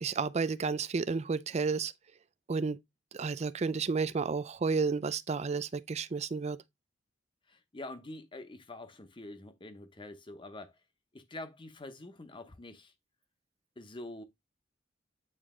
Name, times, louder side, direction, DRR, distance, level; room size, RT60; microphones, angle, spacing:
voice 1, 0.0-1.9 2.5-2.8 3.1-6.6, right 4 dB, 35° right, 0.4 m, -31 dB
voice 2, 7.5-10.8 11.1-12.9 13.8-14.2, left 2 dB, 25° left, 0.9 m, -46 dB
8.9 x 3.3 x 3.7 m
head